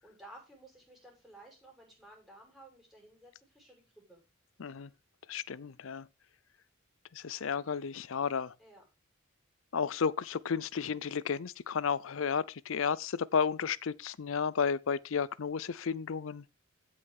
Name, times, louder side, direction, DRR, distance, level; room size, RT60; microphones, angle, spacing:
voice 1, 0.0-4.2 8.6-8.8, right 1 dB, ahead, 5.7 m, -55 dB
voice 2, 4.6-4.9 5.3-6.1 7.1-8.5 9.7-16.4, left 6 dB, 70° left, 0.5 m, -32 dB
16.0 x 5.5 x 3.6 m
head